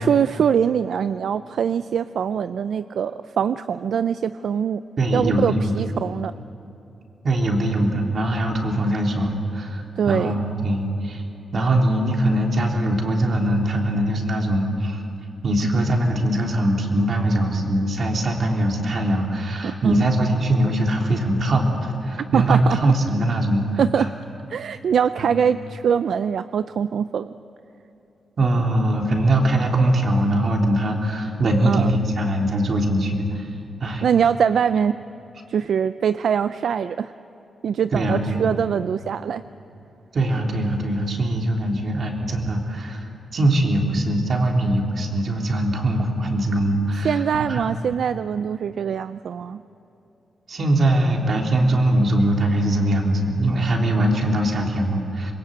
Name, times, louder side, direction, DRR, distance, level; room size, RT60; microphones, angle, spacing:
voice 1, 0.0-4.8 5.1-6.3 8.8-9.0 10.0-10.4 15.6-15.8 19.6-20.0 22.3-22.9 23.8-24.1 24.5-27.3 31.6-31.9 34.0-35.0 35.5-37.1 37.6-39.4 43.9-44.0 47.0-49.6, right 7 dB, 75° right, 12 dB, 0.5 m, -23 dB
voice 2, 5.0-5.7 7.2-11.2 11.5-15.0 15.4-21.7 22.0-24.1 25.2-25.3 28.4-33.5 33.8-34.1 37.9-38.4 40.1-47.2 47.5-47.7 50.5-55.3, right 1 dB, 50° right, 1 dB, 3.5 m, -21 dB
26.0 x 22.0 x 8.2 m, 3.0 s
wide cardioid pair, 120°, 0 cm